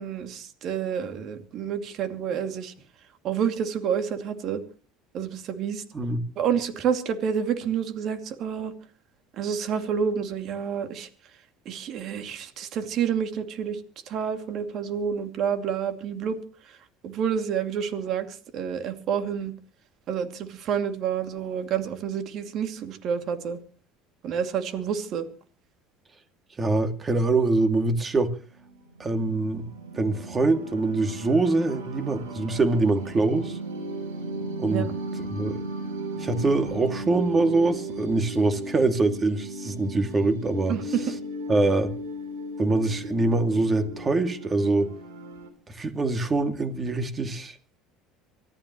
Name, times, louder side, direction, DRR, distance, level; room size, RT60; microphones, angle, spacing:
voice 1, 0.0-2.7 3.2-4.6 5.1-5.8 6.4-8.7 9.3-11.1 11.7-13.8 14.1-16.4 17.0-19.5 20.1-23.6 24.2-25.3 34.7-34.9 40.7-41.0, right 8 dB, 55° right, 2.5 m, -29 dB
voice 2, 26.6-28.3 29.0-29.6 29.9-33.6 34.6-34.9 35.3-35.6 36.2-40.8 41.5-41.9 42.6-44.9 45.7-47.6, right 3 dB, 30° right, 2.5 m, -24 dB
sound 1, 28.5-45.5, right 1 dB, 85° right, 3.4 m, -36 dB
24.5 x 15.0 x 3.1 m
hypercardioid pair, 75°, 0 cm